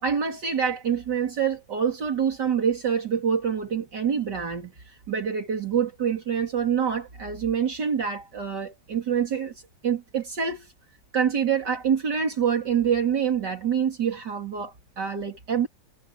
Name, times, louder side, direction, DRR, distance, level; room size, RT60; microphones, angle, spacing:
voice 1, 0.0-9.5 9.8-10.7 11.1-15.7, right 7 dB, 70° right, 3.4 m, -26 dB
omnidirectional pair, 1.9 m